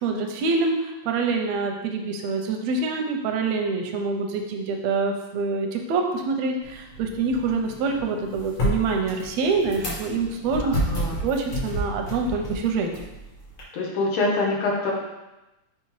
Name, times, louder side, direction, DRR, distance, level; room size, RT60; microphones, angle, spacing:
voice 1, 0.0-10.8 11.2-12.9, right 4 dB, 80° right, 3 dB, 1.6 m, -26 dB
sound 1, 6.6-13.6, equal, 55° left, 2.7 m, -31 dB
voice 2, 10.6-11.2 13.7-14.9, left 2 dB, 80° left, -1 dB, 2.5 m, -25 dB
6.8 x 5.1 x 3.1 m, 1.0 s
omnidirectional pair, 3.5 m